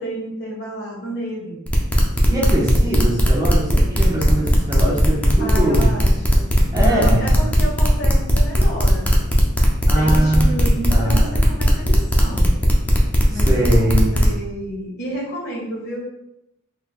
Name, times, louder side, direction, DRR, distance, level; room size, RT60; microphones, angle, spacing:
voice 1, 0.0-1.6 5.4-9.4 9.9-12.5 13.3-16.0, equal, 60° left, -4 dB, 1.4 m, -30 dB
sound 1, 1.7-14.3, equal, 10° left, 0.6 m, -18 dB
voice 2, 2.3-5.9 6.7-7.4 9.9-11.4 13.3-14.2, right 1 dB, 20° right, -5 dB, 1.0 m, -22 dB
4.3 x 3.8 x 2.3 m, 0.84 s
head